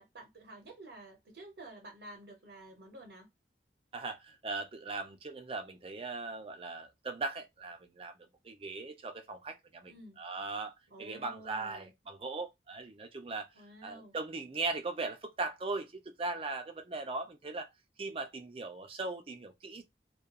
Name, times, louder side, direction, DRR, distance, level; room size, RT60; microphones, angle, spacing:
voice 1, 0.0-3.3 9.8-10.2 10.9-11.9 13.5-14.1, right 1 dB, 75° right, 0.7 m, -51 dB
voice 2, 3.9-8.2 8.4-9.9 10.2-10.7 11.0-13.5 13.8-17.7 18.0-19.8, right 3 dB, 30° right, 0.4 m, -39 dB
2.3 x 2.3 x 2.8 m
head